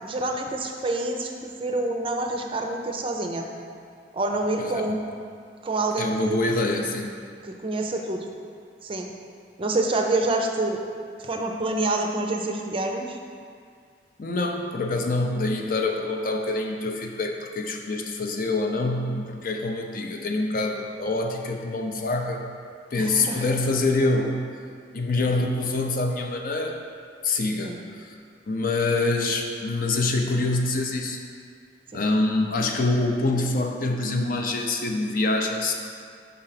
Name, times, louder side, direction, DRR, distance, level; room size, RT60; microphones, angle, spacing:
voice 1, 0.0-3.5 4.1-5.0 5.6-6.4 7.4-8.2 8.8-9.1 9.6-10.8 11.2-13.2 23.0-23.4 27.6-27.8 31.9-32.0, right 2 dB, 30° right, 3 dB, 0.5 m, -27 dB
voice 2, 6.0-7.1 14.2-22.5 22.9-24.4 24.9-26.8 27.2-28.1 28.5-31.3 31.9-35.7, left 2 dB, 50° left, 2 dB, 0.5 m, -25 dB
5.5 x 3.8 x 5.8 m, 2.2 s
head